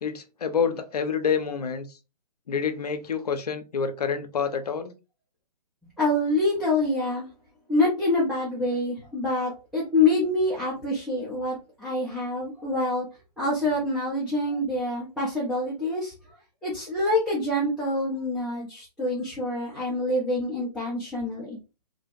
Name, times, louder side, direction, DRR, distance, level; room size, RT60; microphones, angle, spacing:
voice 1, 0.0-1.9 2.5-4.9, left 6 dB, 70° left, 0.5 m, -27 dB
voice 2, 6.0-7.3 7.7-13.1 13.4-16.1 16.6-21.6, left 2 dB, ahead, 0.3 m, -26 dB
2.5 x 2.1 x 2.6 m
figure-of-eight pair, 130°, 21 cm